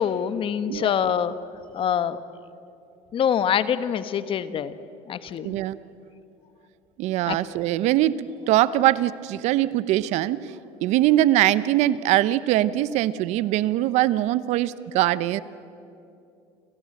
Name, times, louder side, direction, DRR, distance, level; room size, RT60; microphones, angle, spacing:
voice 1, 0.0-1.3 1.7-2.2 3.1-4.7 5.1-5.6 7.3-7.4, left 8 dB, 45° left, 13 dB, 1.2 m, -25 dB
voice 2, 5.4-5.8 7.0-15.4, right 14 dB, 65° right, 17 dB, 0.8 m, -22 dB
28.5 x 17.5 x 7.8 m, 2.7 s
supercardioid pair, 95°, 12 cm